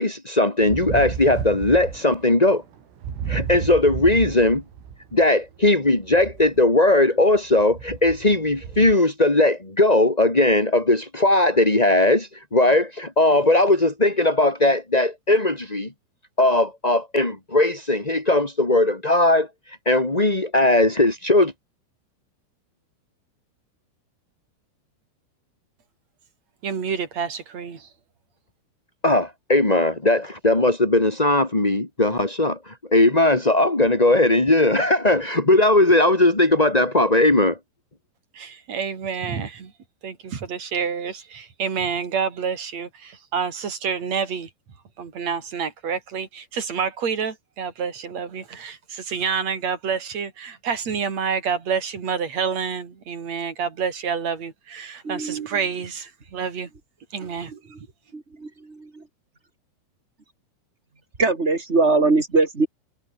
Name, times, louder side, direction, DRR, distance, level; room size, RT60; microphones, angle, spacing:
voice 1, 0.0-2.6 3.3-4.6 5.1-15.9 16.4-19.5 19.8-21.5 29.0-37.6, left 2 dB, 15° left, 1.4 m, -19 dB
sound 1, 0.6-5.3 5.6-6.8 7.4-8.9, right 7 dB, 85° right, 7.1 m, -33 dB
voice 2, 26.6-27.9 38.3-39.7 40.0-44.5 45.0-56.7 57.1-57.9, right 6 dB, 35° right, 4.2 m, -28 dB
voice 3, 55.0-55.3 58.1-58.5 61.2-62.7, right 3 dB, 20° right, 2.0 m, -20 dB
omnidirectional pair, 5.7 m